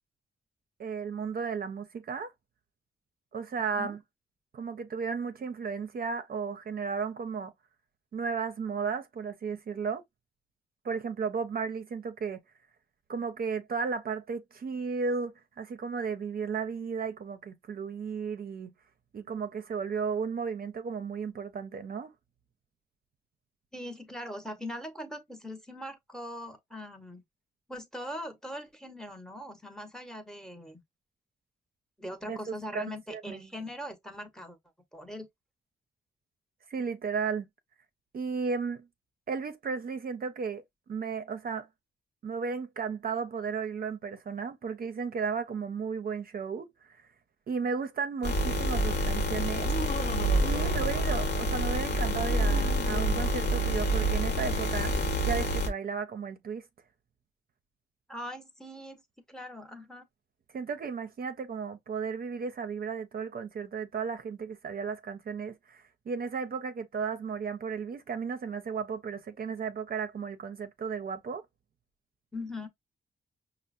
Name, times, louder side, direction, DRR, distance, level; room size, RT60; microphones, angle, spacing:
voice 1, 0.8-2.3 3.3-4.0 4.5-7.5 8.1-10.0 10.8-12.4 13.1-18.7 19.1-22.1 32.3-32.4 32.7-32.8 33.1-33.4 36.7-37.5 38.1-38.9 39.3-41.7 42.2-47.1 47.5-49.7 50.4-54.9 55.2-56.6 60.5-71.4, right 5 dB, 55° right, 0.5 m, -34 dB
voice 2, 23.7-27.2 27.7-30.8 32.0-34.6 34.9-35.3 58.1-59.0 59.3-60.1 72.3-72.7, left 1 dB, 5° left, 0.8 m, -41 dB
sound 1, 48.2-55.7, right 1 dB, 65° left, 1.0 m, -28 dB
Laughter, 49.5-51.7 52.1-54.5, left 5 dB, 45° left, 0.6 m, -40 dB
5.4 x 2.0 x 2.4 m
cardioid pair, 95°, 19 cm